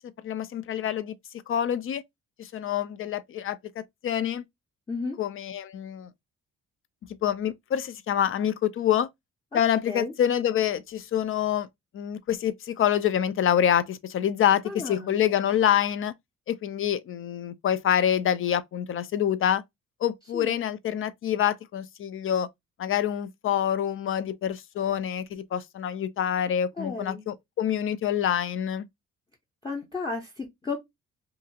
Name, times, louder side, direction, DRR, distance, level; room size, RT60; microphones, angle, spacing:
voice 1, 0.2-1.1 1.5-2.0 2.4-4.4 5.2-6.1 7.2-9.1 9.5-11.7 11.9-16.1 16.5-19.6 20.0-22.5 22.8-28.9, left 10 dB, 45° left, 0.4 m, -26 dB
voice 2, 14.6-15.1 20.3-20.6 26.8-27.2 29.6-30.8, left 3 dB, 15° left, 0.7 m, -33 dB
2.8 x 2.4 x 2.7 m
cardioid pair, 90°, 30 cm